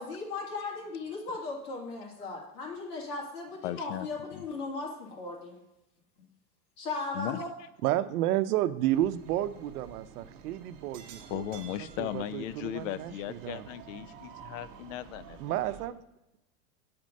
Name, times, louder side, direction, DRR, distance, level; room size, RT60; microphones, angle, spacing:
voice 1, 0.0-5.6 6.8-7.5, left 3 dB, 80° left, -1 dB, 2.2 m, -37 dB
voice 2, 3.6-4.1 4.3-4.5 7.1-7.4 11.3-15.6, left 12 dB, 60° left, 16 dB, 0.5 m, -37 dB
voice 3, 7.8-13.7 15.4-16.0, right 13 dB, 75° right, 13 dB, 0.6 m, -31 dB
sound 1, 8.9-15.9, right 7 dB, 35° right, 0.8 m, -50 dB
7.5 x 4.4 x 5.2 m, 0.92 s
supercardioid pair, 165°, 46 cm